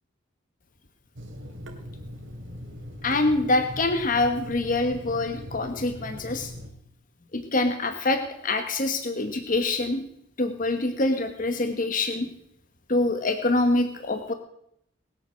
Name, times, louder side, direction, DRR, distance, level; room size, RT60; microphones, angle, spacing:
Water tap faucet / Sink (filling or washing), 1.1-6.7, left 1 dB, 85° right, 2.7 m, -40 dB
voice 1, 3.0-6.5 7.3-10.0 10.4-12.3 12.9-14.3, left 2 dB, 45° left, 7 dB, 1.2 m, -25 dB
20.0 x 9.2 x 6.3 m, 0.74 s
head